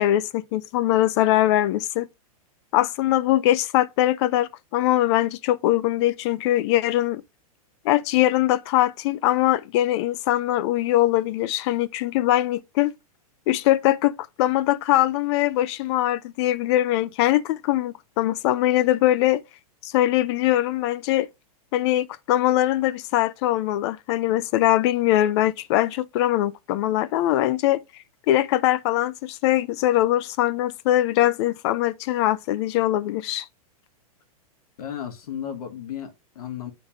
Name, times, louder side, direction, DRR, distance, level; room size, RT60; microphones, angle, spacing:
voice 1, 0.0-2.1 2.7-7.2 7.8-12.9 13.5-14.1 14.4-19.4 19.8-21.3 21.7-27.8 28.3-33.4, left 14 dB, 45° left, 0.5 m, -22 dB
voice 2, 34.8-36.7, left 9 dB, 70° left, 1.7 m, -34 dB
8.7 x 3.9 x 3.5 m
hypercardioid pair, 130°, 19 cm